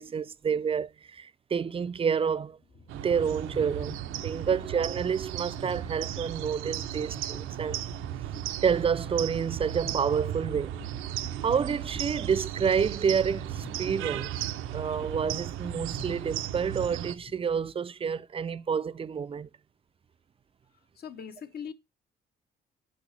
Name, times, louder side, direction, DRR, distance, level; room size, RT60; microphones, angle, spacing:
voice 1, 0.0-2.6 2.9-7.8 8.6-10.8 11.4-14.4 14.7-19.5, right 6 dB, 30° right, 0.4 m, -29 dB
sound 1, 2.5-17.8, left 3 dB, 80° left, 3.8 m, -48 dB
sound 2, 2.9-17.1, right 12 dB, 90° right, 0.6 m, -36 dB
voice 2, 21.0-21.7, left 7 dB, 55° left, 1.0 m, -41 dB
6.3 x 5.6 x 3.2 m
cardioid pair, 90°, 20 cm